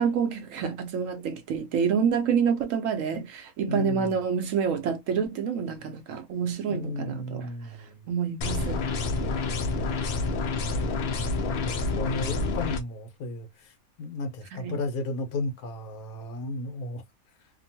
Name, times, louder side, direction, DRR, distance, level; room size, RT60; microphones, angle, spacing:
voice 1, 0.0-7.5 8.1-8.8 14.5-14.8, right 6 dB, 70° right, 0.9 m, -27 dB
voice 2, 3.7-4.2 6.7-8.1 10.6-10.9 11.4-13.7 14.0-17.0, left 2 dB, 75° left, 1.3 m, -34 dB
sound 1, 8.4-12.8, left 3 dB, 55° left, 0.7 m, -28 dB
2.9 x 2.2 x 2.7 m
omnidirectional pair, 1.6 m